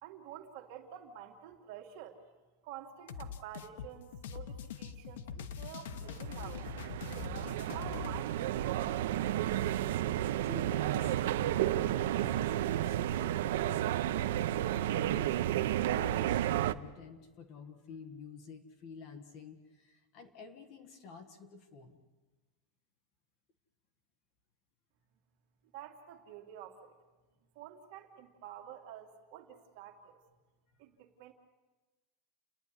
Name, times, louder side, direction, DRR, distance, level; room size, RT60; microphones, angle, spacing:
voice 1, 0.0-2.2 2.6-6.7 7.1-9.8 25.7-27.0 27.5-30.2 30.8-31.3, right 10 dB, 45° right, 3 dB, 2.4 m, -49 dB
sound 1, 3.1-8.2, left 7 dB, 80° left, 1.1 m, -43 dB
sound 2, 5.9-16.7, right 12 dB, 65° right, 0.7 m, -32 dB
voice 2, 10.4-15.6 15.9-22.0, left 5 dB, 35° left, 7 dB, 1.7 m, -51 dB
30.0 x 10.5 x 9.8 m, 1.2 s
supercardioid pair, 180°, 0 cm